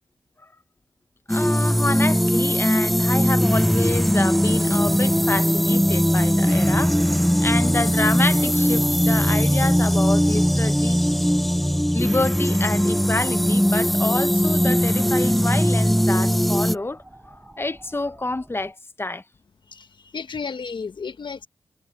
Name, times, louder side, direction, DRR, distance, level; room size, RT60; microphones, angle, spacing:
voice 1, 1.3-6.9 7.4-11.0 11.9-17.0 17.3-19.2, left 2 dB, 25° left, 1.1 m, -28 dB
sound 1, 1.3-16.8, equal, ahead, 0.4 m, -20 dB
sound 2, 5.9-18.7, right 1 dB, 15° right, 5.3 m, -50 dB
voice 2, 19.7-21.5, left 5 dB, 65° left, 1.2 m, -33 dB
cardioid pair, 45°, 9 cm